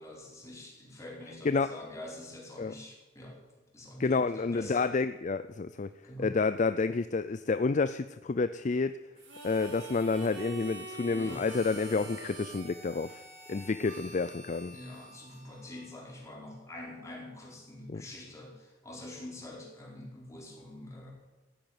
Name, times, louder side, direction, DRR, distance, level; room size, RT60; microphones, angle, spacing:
voice 1, 0.0-3.4 3.7-4.9 6.0-6.3 11.1-11.4 13.9-14.3 14.7-21.1, left 1 dB, 15° left, -2 dB, 4.6 m, -46 dB
voice 2, 4.0-5.9 6.2-8.9 9.4-13.2 13.5-14.8 17.9-18.0, left 4 dB, 40° left, 12 dB, 0.4 m, -29 dB
Harmonica, 9.2-16.1, right 2 dB, 75° right, 5.0 m, -46 dB
15.0 x 9.0 x 9.6 m, 1.2 s
head